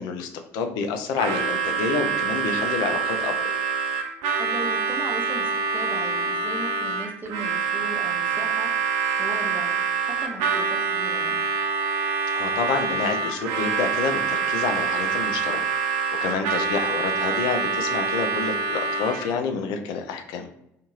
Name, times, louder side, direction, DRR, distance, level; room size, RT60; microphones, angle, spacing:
voice 1, 0.0-3.5 12.3-15.6 16.2-20.5, left 5 dB, 60° left, 6 dB, 0.4 m, -28 dB
Harmonica, 1.1-19.4, right 5 dB, 65° right, 0.4 m, -26 dB
voice 2, 4.4-9.7 10.0-11.4, right 2 dB, 25° right, 2 dB, 0.8 m, -37 dB
2.6 x 2.4 x 3.0 m, 0.81 s
figure-of-eight pair, 50°, 8 cm